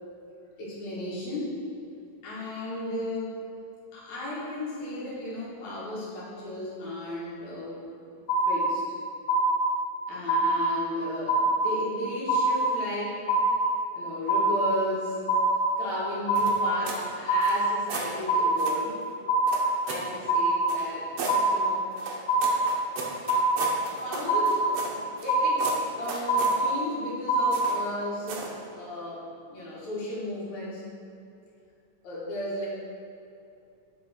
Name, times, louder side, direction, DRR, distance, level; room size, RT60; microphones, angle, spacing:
voice 1, 0.6-1.6 2.2-3.4 3.9-7.8 8.5-8.8 10.1-13.2 13.9-15.3 15.8-19.0 19.9-21.9 23.5-30.9 32.0-32.7, left 1 dB, 60° left, -6 dB, 2.7 m, -35 dB
sound 1, 8.3-9.0 9.3-10.0 10.3-11.0 11.3-12.0 12.3-13.0 13.3-14.0 14.3-15.0 15.3-16.0 16.3-17.0 17.3-18.0 18.3-19.0 19.3-20.0 20.3-21.0 21.3-22.0 22.3-23.0 23.3-24.0 24.3-25.0 25.3-26.0 26.3-27.0 27.3-28.0, right 1 dB, 90° left, 2.4 m, -24 dB
sound 2, 16.3-17.1 17.4-18.1 18.6-18.8 19.5-20.1 20.7-21.4 22.0-25.3 25.6-26.6 27.5-27.9 28.3-28.6, right 4 dB, 80° right, 1.4 m, -36 dB
8.0 x 4.7 x 4.2 m, 2.6 s
omnidirectional pair, 4.0 m